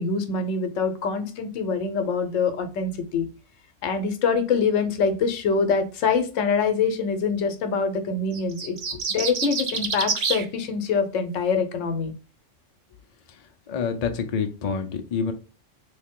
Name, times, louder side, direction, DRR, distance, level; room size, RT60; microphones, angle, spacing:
voice 1, 0.0-3.3 3.8-8.8 9.1-12.1, left 5 dB, 85° left, 8 dB, 1.1 m, -24 dB
sound 1, 8.3-10.4, right 5 dB, 60° right, 0.4 m, -27 dB
voice 2, 13.7-15.3, left 6 dB, 50° left, 6 dB, 0.5 m, -27 dB
3.2 x 2.7 x 3.6 m, 0.35 s
omnidirectional pair, 1.3 m